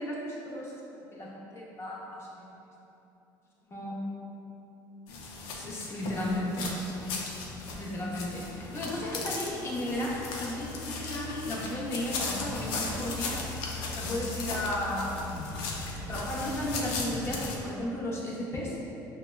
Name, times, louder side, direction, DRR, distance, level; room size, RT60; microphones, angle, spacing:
voice 1, 0.0-2.5 3.7-4.0 5.5-6.8 7.8-13.3 14.0-15.6 16.0-18.8, left 1 dB, 30° left, -5 dB, 0.8 m, -34 dB
sound 1, 5.1-17.6, left 3 dB, 85° left, 0.5 m, -37 dB
5.5 x 2.2 x 2.3 m, 3.0 s
cardioid pair, 105°, 9 cm